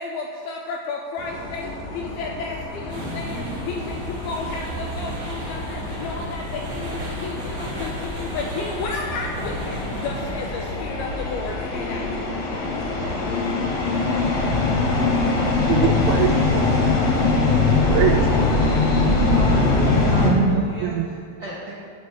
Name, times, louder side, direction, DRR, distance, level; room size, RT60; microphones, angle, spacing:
voice 1, 0.0-12.4, left 4 dB, 80° left, 1 dB, 2.3 m, -32 dB
sound 1, 1.2-20.3, left 3 dB, 60° left, 1.7 m, -23 dB
sound 2, 2.9-14.9, equal, 30° right, 1.8 m, -35 dB
voice 2, 15.7-16.8 17.9-18.9 20.2-21.1, right 7 dB, 90° right, 2 dB, 2.2 m, -24 dB
voice 3, 19.2-21.7, right 2 dB, 65° right, -7 dB, 1.6 m, -33 dB
12.0 x 4.5 x 8.3 m, 2.4 s
omnidirectional pair, 5.1 m